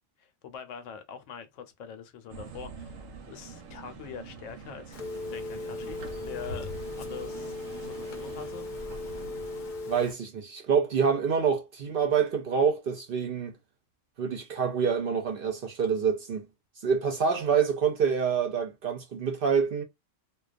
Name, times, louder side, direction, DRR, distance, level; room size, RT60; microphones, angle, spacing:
voice 1, 0.2-5.0 5.3-8.7, left 7 dB, 80° left, 0.9 m, -44 dB
sound 1, 2.3-9.7, right 3 dB, 90° right, 1.0 m, -44 dB
Telephone, 4.9-10.1, left 2 dB, 55° left, 0.6 m, -38 dB
voice 2, 9.9-13.6 14.2-16.4 16.8-19.8, right 6 dB, 60° right, 0.6 m, -26 dB
2.3 x 2.2 x 2.4 m
omnidirectional pair, 1.3 m